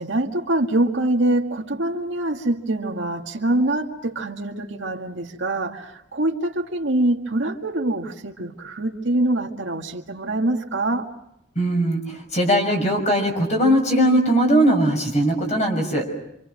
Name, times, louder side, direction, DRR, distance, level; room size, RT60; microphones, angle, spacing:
voice 1, 0.0-11.1, right 1 dB, 75° right, 2.0 m, -24 dB
voice 2, 11.5-16.0, right 1 dB, 35° left, 6.3 m, -20 dB
27.5 x 26.5 x 6.4 m
head